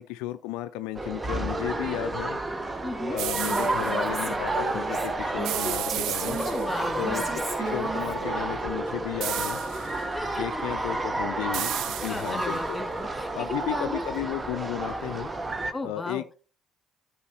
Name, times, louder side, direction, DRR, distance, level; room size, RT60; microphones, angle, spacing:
voice 1, 0.0-2.4 3.1-6.4 7.0-7.2 7.6-9.6 10.4-12.8 13.3-15.3 15.8-16.3, left 14 dB, 75° left, 10 dB, 0.3 m, -34 dB
sound 1, 0.9-15.7, right 2 dB, 25° right, 1.1 m, -31 dB
voice 2, 2.8-3.2 6.4-7.4 10.1-10.6 12.1-13.3 13.6-14.0 15.7-16.2, left 2 dB, 20° left, 7 dB, 2.0 m, -35 dB
sound 2, 3.2-3.9 5.4-6.9 9.2-10.0 11.5-12.6, right 13 dB, 65° right, 0.3 m, -33 dB
Female speech woman speaking, 3.5-8.6, right 2 dB, 45° right, 3.8 m, -35 dB
13.0 x 6.2 x 2.9 m, 0.37 s
hypercardioid pair, 50°, 0 cm